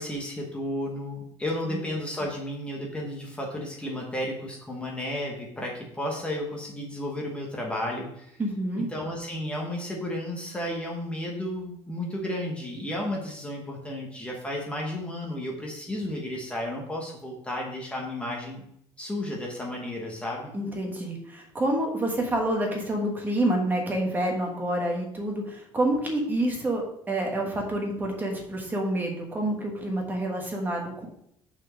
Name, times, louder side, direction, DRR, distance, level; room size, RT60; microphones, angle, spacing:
voice 1, 0.0-8.4 8.8-18.6 19.0-20.5, left 1 dB, 10° left, -2 dB, 1.1 m, -33 dB
voice 2, 8.4-8.9 20.5-26.8 27.1-31.1, right 1 dB, 15° right, 1 dB, 1.3 m, -28 dB
6.1 x 4.4 x 6.1 m, 0.72 s
cardioid pair, 165°, 11 cm